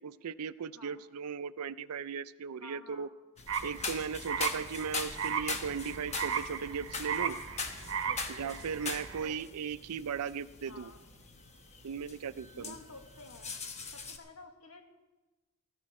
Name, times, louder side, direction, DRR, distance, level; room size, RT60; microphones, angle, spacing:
voice 1, 0.0-3.1 3.6-7.4 8.3-10.9 11.8-12.7, right 6 dB, 85° right, 15 dB, 0.5 m, -37 dB
voice 2, 2.6-3.1 7.9-8.8 9.2-9.4 10.7-11.1 12.5-13.5 13.9-14.8, left 2 dB, 75° left, 4 dB, 1.7 m, -52 dB
sound 1, 3.4-14.2, left 4 dB, 30° left, 1.0 m, -42 dB
sound 2, 3.5-9.3, right 7 dB, 60° right, 0.9 m, -37 dB
15.0 x 14.0 x 4.3 m, 1.2 s
head